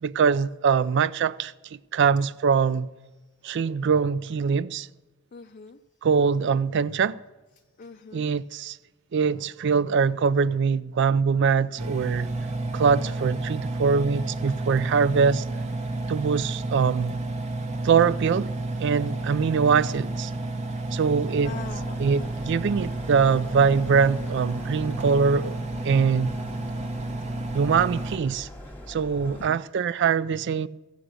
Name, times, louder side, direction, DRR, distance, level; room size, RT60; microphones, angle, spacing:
voice 1, 0.0-2.9 3.4-4.9 6.0-7.2 8.1-8.8 9.1-12.3 12.7-15.4 16.1-17.2 17.8-18.5 18.8-20.3 20.9-21.5 22.0-25.6 25.8-26.3 27.5-28.5 28.9-30.7, right 6 dB, 60° right, 0.4 m, -23 dB
voice 2, 5.3-5.8 7.8-8.3 13.0-13.4 21.4-21.9 29.2-29.6, left 4 dB, 45° left, 0.4 m, -42 dB
Engine, 11.8-28.2, right 2 dB, 35° right, 0.8 m, -31 dB
sound 1, 21.4-29.5, left 1 dB, 10° left, 1.3 m, -44 dB
15.0 x 8.1 x 6.2 m
head